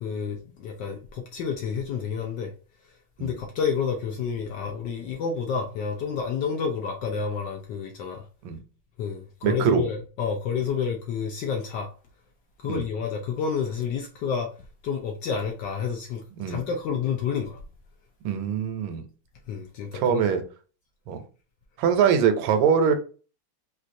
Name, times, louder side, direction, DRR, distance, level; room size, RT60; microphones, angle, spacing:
voice 1, 0.0-2.5 3.2-8.2 9.0-11.9 12.6-14.5 14.8-17.6 19.5-20.2, left 6 dB, 75° left, 1.1 m, -29 dB
voice 2, 9.4-9.8 12.7-12.8 16.4-16.6 18.2-19.0 19.9-20.4 21.1-21.2 21.8-22.9, right 7 dB, 75° right, 1.3 m, -23 dB
4.5 x 2.3 x 2.5 m
omnidirectional pair, 2.3 m